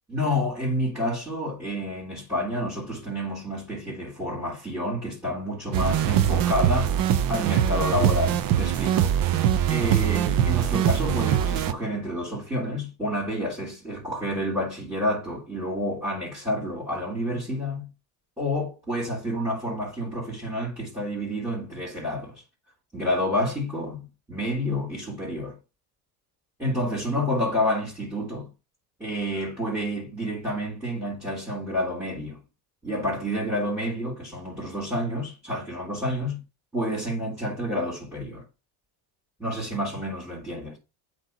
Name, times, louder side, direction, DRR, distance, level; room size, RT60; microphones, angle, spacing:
voice 1, 0.1-7.0 7.3-9.1 9.7-17.9 18.4-22.4 22.9-25.6 26.6-28.5 29.0-32.4 32.8-36.4 36.7-38.4 39.4-40.8, left 1 dB, 5° right, 3.5 m, -29 dB
sound 1, 5.7-11.7, right 10 dB, 50° right, 0.8 m, -22 dB
8.0 x 3.2 x 5.3 m
cardioid pair, 120°, 44 cm